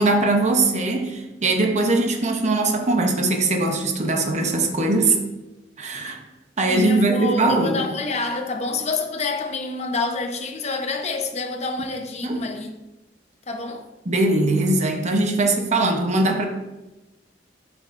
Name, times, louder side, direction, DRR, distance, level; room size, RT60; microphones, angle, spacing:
voice 1, 0.0-5.2 5.8-6.2 6.6-7.8 12.2-12.4 14.1-16.5, right 2 dB, 40° right, 0.8 m, -21 dB
voice 2, 6.7-12.7 13.5-13.8, left 3 dB, 40° left, 0.8 m, -27 dB
8.3 x 6.2 x 2.6 m
head